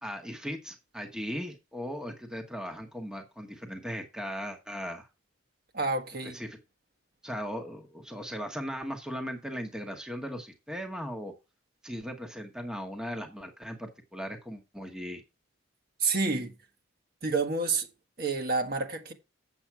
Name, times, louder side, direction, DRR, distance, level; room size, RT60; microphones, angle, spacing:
voice 1, 0.0-5.1 6.3-6.6 7.2-11.3 11.8-15.2, equal, 5° right, 1.1 m, -38 dB
voice 2, 5.7-6.4 16.0-16.5 17.2-17.9 18.2-19.1, right 3 dB, 45° right, 1.4 m, -29 dB
7.9 x 7.4 x 4.7 m
head